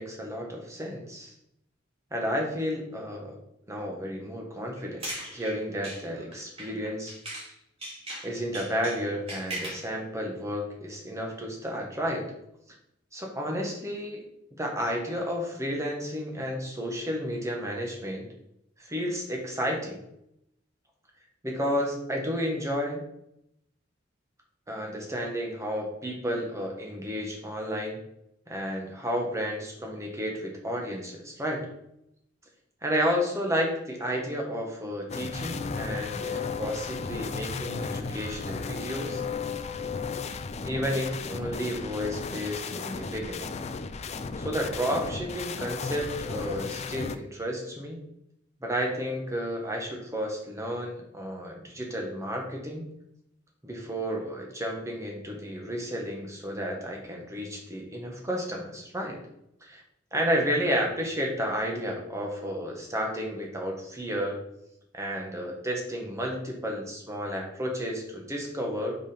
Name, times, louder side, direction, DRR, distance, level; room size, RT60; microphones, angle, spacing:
voice 1, 0.0-1.3 2.1-3.4 3.7-7.1 8.2-12.3 13.1-14.2 14.5-18.3 18.8-20.0 21.4-23.0 24.7-28.0 28.5-31.7 32.8-39.2 40.6-43.5 44.4-48.0 48.6-52.8 53.6-59.2 59.6-59.8 60.1-64.4 64.9-69.0, equal, 15° right, 0 dB, 1.5 m, -32 dB
sound 1, 4.8-7.5 7.8-9.9, right 1 dB, 30° right, 2.4 m, -39 dB
sound 2, 35.1-47.2, left 4 dB, 35° left, 0.4 m, -34 dB
5.4 x 5.4 x 5.1 m, 0.78 s
head